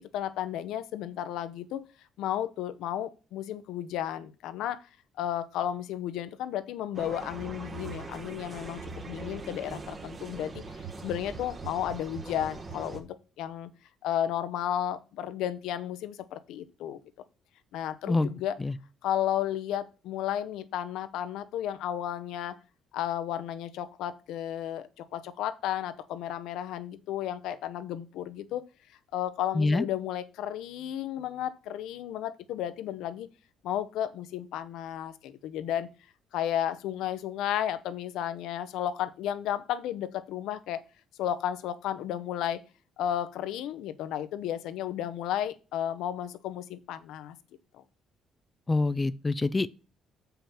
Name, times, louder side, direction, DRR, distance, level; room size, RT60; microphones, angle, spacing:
voice 1, 0.0-1.8 2.2-4.8 5.2-10.5 11.0-13.7 14.0-17.0 17.7-18.5 19.0-22.6 22.9-28.6 29.1-33.3 33.6-35.9 36.3-40.8 41.2-42.6 43.0-47.4, left 11 dB, 85° left, 0.7 m, -33 dB
sound 1, 6.9-13.0, right 3 dB, 30° right, 1.5 m, -41 dB
voice 2, 48.7-49.7, left 3 dB, 20° left, 0.4 m, -25 dB
7.2 x 5.7 x 5.7 m
cardioid pair, 120°, 0 cm